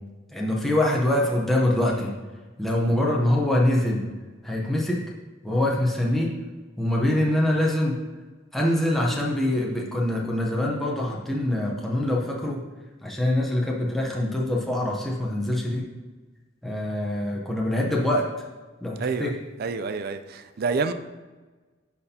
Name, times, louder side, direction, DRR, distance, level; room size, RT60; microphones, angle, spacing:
voice 1, 0.3-2.1 2.6-4.0 4.4-5.0 5.4-6.3 6.8-8.0 8.5-12.6 13.0-15.9 16.6-18.2 18.8-19.3, left 1 dB, ahead, 0.7 m, -24 dB
voice 2, 19.0-19.3 19.6-20.9, right 4 dB, 50° right, 0.4 m, -28 dB
10.5 x 4.2 x 2.8 m
head